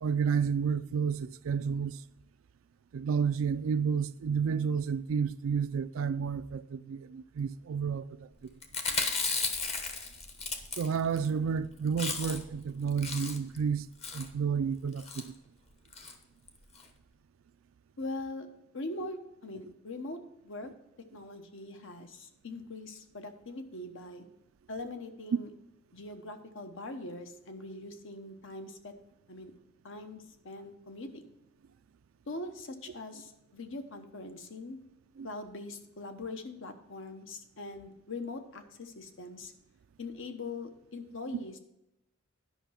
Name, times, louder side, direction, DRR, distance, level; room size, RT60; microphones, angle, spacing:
voice 1, 0.0-2.0 2.9-8.3 10.8-13.9 14.1-15.3 35.2-35.3, right 6 dB, 75° right, 0.4 m, -31 dB
Chewing mastication, 8.6-11.3 11.6-11.7 11.9-12.6 12.9-13.6 14.0-14.3 15.0-15.3 15.9-16.1 16.5-16.6 16.8-16.9, left 4 dB, 30° left, 1.0 m, -34 dB
voice 2, 18.0-18.5 18.7-20.7 21.1-24.3 24.7-25.5 25.9-28.9 29.3-29.5 29.8-31.3 32.3-34.8 35.2-39.5 40.0-41.6, left 2 dB, 65° left, 1.0 m, -42 dB
10.0 x 5.7 x 5.7 m
head